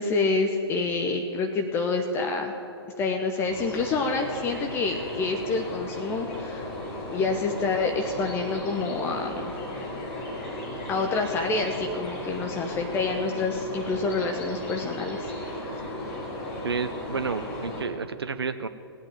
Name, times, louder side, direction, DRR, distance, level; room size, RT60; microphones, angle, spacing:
voice 1, 0.0-2.6 3.0-6.7 7.1-9.5 10.9-15.3 15.6-15.8, left 3 dB, 15° left, 4 dB, 0.9 m, -27 dB
sound 1, 3.5-17.8, left 1 dB, 35° left, 4.5 m, -35 dB
voice 2, 16.6-18.7, right 5 dB, 70° right, 10 dB, 0.6 m, -30 dB
17.5 x 8.8 x 9.1 m, 2.7 s
figure-of-eight pair, 120°, 13 cm